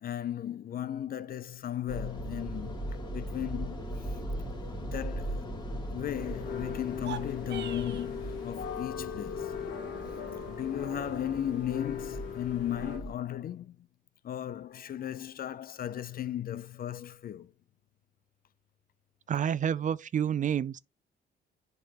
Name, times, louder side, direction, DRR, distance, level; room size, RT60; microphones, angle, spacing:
voice 1, 0.0-2.8 3.1-4.2 4.8-5.5 5.9-9.6 10.5-13.8 14.2-17.5, left 11 dB, 50° left, 0.5 m, -36 dB
sound 1, 1.9-13.1, right 1 dB, 20° left, 2.3 m, -39 dB
sound 2, 6.2-13.0, left 6 dB, 75° left, 2.2 m, -39 dB
sound 3, 6.9-8.1, right 9 dB, 60° right, 0.7 m, -42 dB
voice 2, 19.3-20.8, right 9 dB, 40° right, 0.4 m, -29 dB
7.6 x 5.2 x 3.0 m
cardioid pair, 90°, 20 cm